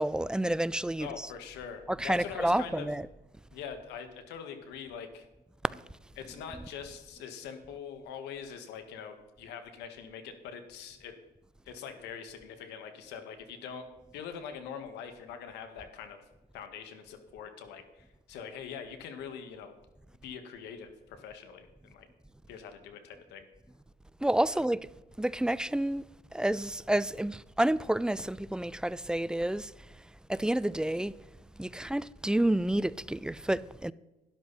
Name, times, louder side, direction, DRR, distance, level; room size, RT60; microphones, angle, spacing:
voice 1, 0.0-1.1 2.0-3.0 5.7-5.8 24.2-24.8 25.2-26.0 26.3-29.7 30.3-31.1 31.6-33.9, right 1 dB, 5° right, 0.3 m, -29 dB
voice 2, 1.0-2.9 3.5-5.3 6.2-11.2 11.7-16.2 16.5-19.7 20.2-22.1 22.5-23.5 24.5-24.6, left 7 dB, 85° left, 1.8 m, -43 dB
12.5 x 11.0 x 4.2 m
cardioid pair, 110°, 17 cm